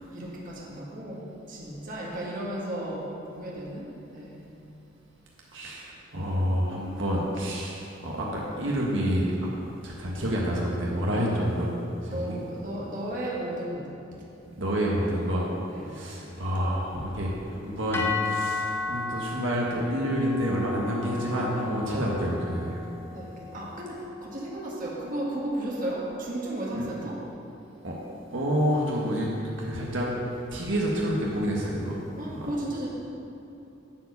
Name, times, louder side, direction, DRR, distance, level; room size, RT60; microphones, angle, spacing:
voice 1, 0.1-4.5 12.0-13.9 15.7-16.1 23.1-27.2 32.2-32.9, right 1 dB, 45° right, -4 dB, 1.9 m, -34 dB
voice 2, 5.5-9.5 9.8-11.7 12.0-12.4 14.6-15.5 15.9-22.8 26.7-26.9 27.8-27.9 28.3-29.3 29.6-30.1 30.5-32.0 32.3-32.5, equal, 75° right, -4 dB, 1.6 m, -28 dB
sound 1, 17.9-26.2, left 4 dB, 10° left, 0.6 m, -36 dB
11.0 x 4.9 x 8.0 m, 3.0 s
head